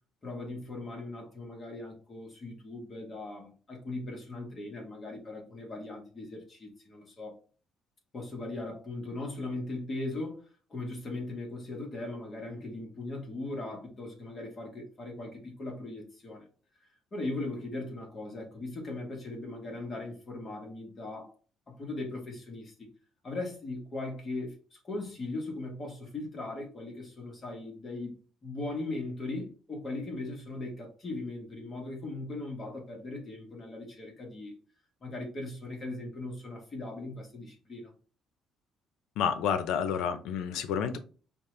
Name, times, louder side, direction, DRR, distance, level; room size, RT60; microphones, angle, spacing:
voice 1, 0.2-7.4 8.1-16.4 17.1-21.3 21.7-22.7 23.2-34.5 35.0-37.9, left 2 dB, 30° left, 1.5 m, -39 dB
voice 2, 39.2-41.0, left 7 dB, 80° left, 0.7 m, -29 dB
5.3 x 2.5 x 3.2 m
cardioid pair, 130°, 0 cm